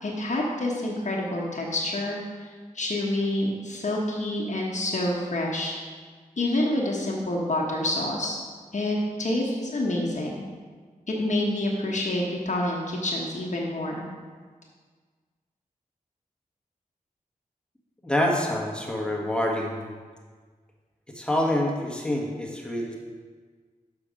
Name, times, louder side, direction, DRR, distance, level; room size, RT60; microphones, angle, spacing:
voice 1, 0.0-2.5 2.7-5.7 6.4-8.4 8.7-10.4 11.1-14.0, left 1 dB, 55° left, -2 dB, 1.2 m, -27 dB
voice 2, 18.0-19.8 21.1-23.0, left 1 dB, 5° left, -1 dB, 1.5 m, -26 dB
6.4 x 5.6 x 5.1 m, 1.5 s
cardioid pair, 55°, 15 cm